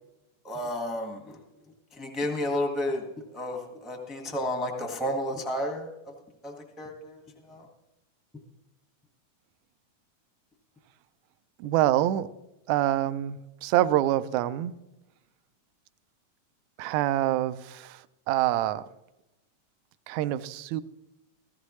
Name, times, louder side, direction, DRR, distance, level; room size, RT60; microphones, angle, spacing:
voice 1, 0.4-1.4 1.9-3.1 3.3-6.1 6.4-7.7, left 1 dB, ahead, 2 dB, 0.4 m, -32 dB
voice 2, 11.6-12.3 12.7-14.7 16.8-18.9 20.1-20.8, right 13 dB, 80° right, 14 dB, 1.8 m, -26 dB
16.0 x 15.0 x 3.1 m, 0.95 s
omnidirectional pair, 3.4 m